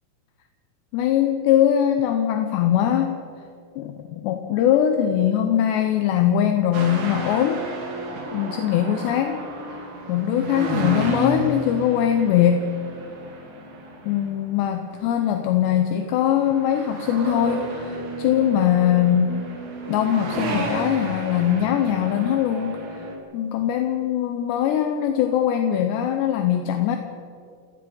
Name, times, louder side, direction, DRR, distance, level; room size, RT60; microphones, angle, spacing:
voice 1, 0.9-3.2 3.8-7.6 8.3-9.4 10.1-12.7 14.0-19.4 19.9-22.7 23.3-27.0, left 10 dB, 75° left, 6 dB, 2.8 m, -21 dB
sound 1, 6.7-15.1 15.7-16.1 16.4-23.2, right 2 dB, 70° right, 5.4 m, -32 dB
28.5 x 18.0 x 5.5 m, 2.2 s
omnidirectional pair, 6.0 m